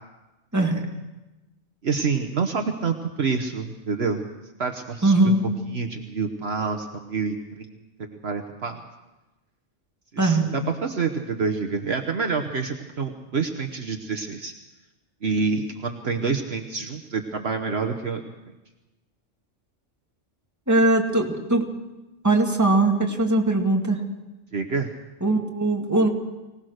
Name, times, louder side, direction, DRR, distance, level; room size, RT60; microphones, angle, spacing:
voice 1, 1.8-4.2 4.6-5.3 5.7-8.8 10.1-14.5 15.2-18.3 24.5-24.9, right 5 dB, 55° right, 5 dB, 1.3 m, -27 dB
voice 2, 5.0-5.4 10.2-10.5 20.7-21.6 22.2-24.0 25.2-26.1, right 2 dB, 15° right, 1 dB, 2.2 m, -20 dB
24.0 x 18.0 x 6.5 m, 1.1 s
omnidirectional pair, 1.3 m